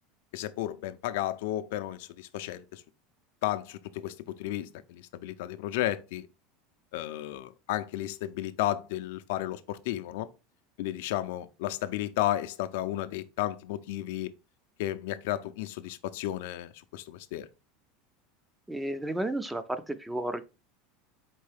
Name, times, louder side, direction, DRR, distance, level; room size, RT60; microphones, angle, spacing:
voice 1, 0.3-2.8 3.4-6.3 6.9-10.3 10.8-14.3 14.8-17.5, left 14 dB, 75° left, 0.4 m, -33 dB
voice 2, 18.7-20.4, right 1 dB, 5° right, 0.3 m, -32 dB
4.5 x 3.2 x 3.3 m
supercardioid pair, 145°, 0 cm